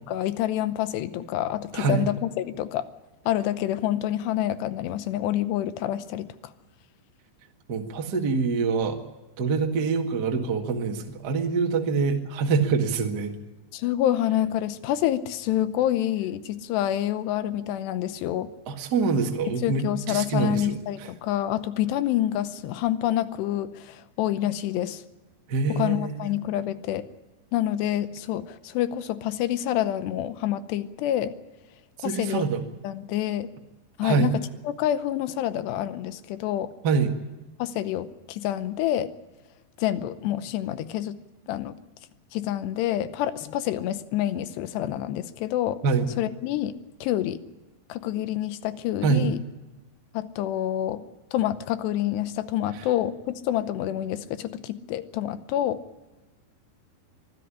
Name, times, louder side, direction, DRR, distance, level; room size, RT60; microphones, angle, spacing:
voice 1, 0.1-2.9 3.3-6.3 13.7-18.5 19.6-25.0 25.8-27.1 27.5-31.3 32.0-32.5 32.8-33.5 34.0-34.3 34.7-36.7 37.6-39.1 39.8-41.2 41.5-41.8 42.3-45.8 46.2-46.7 47.0-47.4 47.9-49.4 50.1-51.0 51.3-55.8, left 12 dB, 75° left, 13 dB, 2.8 m, -27 dB
voice 2, 1.7-2.0 7.7-9.0 9.4-13.3 18.7-21.1 25.5-26.2 32.0-32.6 34.0-34.3 36.8-37.1 45.8-46.1 49.0-49.3 52.7-52.8, right 5 dB, 80° right, 3 dB, 0.9 m, -25 dB
23.5 x 13.5 x 9.9 m, 1.1 s
omnidirectional pair, 5.3 m